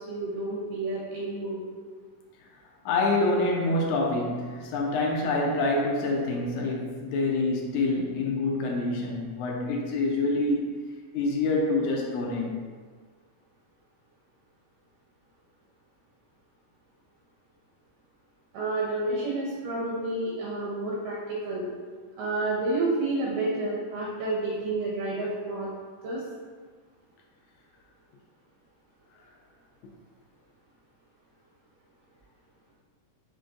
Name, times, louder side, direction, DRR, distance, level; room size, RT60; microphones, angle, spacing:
voice 1, 0.0-1.6 18.5-21.7 22.2-25.7 26.0-26.2, right 2 dB, 75° right, -5 dB, 2.3 m, -30 dB
voice 2, 2.8-10.8 11.1-12.5, left 2 dB, 85° left, 0 dB, 1.6 m, -26 dB
5.1 x 3.8 x 2.5 m, 1.5 s
omnidirectional pair, 3.9 m